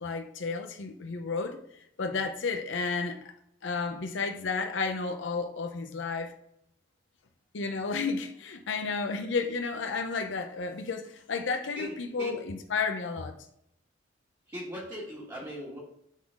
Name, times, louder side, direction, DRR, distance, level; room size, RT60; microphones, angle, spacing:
voice 1, 0.0-1.6 2.0-3.3 3.6-6.3 7.5-13.4, left 4 dB, 80° left, 0.6 m, -32 dB
voice 2, 11.7-12.4 14.5-15.8, equal, 20° right, 1.4 m, -39 dB
8.2 x 3.9 x 3.6 m
head